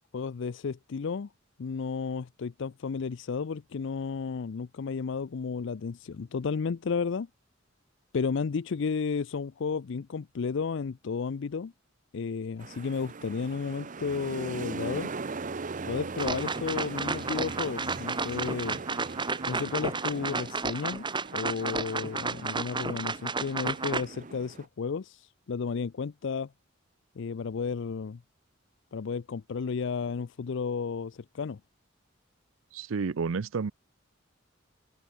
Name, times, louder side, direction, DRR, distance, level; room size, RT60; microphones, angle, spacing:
voice 1, 0.1-1.3 1.6-7.3 8.1-11.7 12.1-15.1 15.9-18.8 19.5-21.0 21.3-26.5 27.2-28.2 28.9-31.6, left 5 dB, 65° left, 0.5 m, -33 dB
sound 1, 12.6-24.7, right 3 dB, 40° right, 0.8 m, -40 dB
sound 2, 16.2-24.0, right 4 dB, 25° right, 2.2 m, -32 dB
voice 2, 32.7-33.7, right 5 dB, 75° right, 0.5 m, -30 dB
open air
head